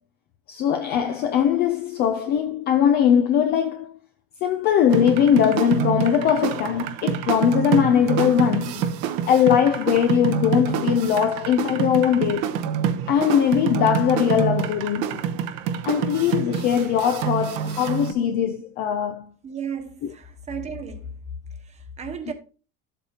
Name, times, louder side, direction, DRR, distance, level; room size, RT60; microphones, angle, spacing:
voice 1, 0.5-3.9 4.4-8.9 9.3-12.7 13.1-15.2 15.9-19.3, left 9 dB, 30° left, 0.4 m, -21 dB
sound 1, 4.9-18.1, right 8 dB, 50° right, 0.9 m, -27 dB
voice 2, 19.4-21.2 21.5-22.3, right 5 dB, 20° right, 1.2 m, -34 dB
12.0 x 7.9 x 2.8 m
cardioid pair, 170°, 38 cm